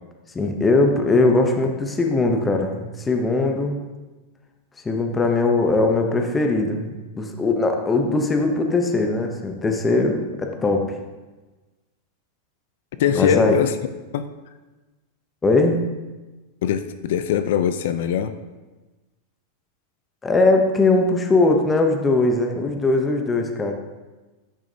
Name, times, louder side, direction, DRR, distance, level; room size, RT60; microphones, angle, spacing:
voice 1, 0.3-3.8 4.8-10.9 13.1-13.6 15.4-15.8 20.2-23.7, left 2 dB, 10° left, 3 dB, 0.6 m, -20 dB
voice 2, 13.0-13.7 14.1-14.3 16.6-18.3, left 8 dB, 65° left, 10 dB, 0.4 m, -22 dB
10.5 x 6.3 x 2.7 m, 1.2 s
supercardioid pair, 170°, 0 cm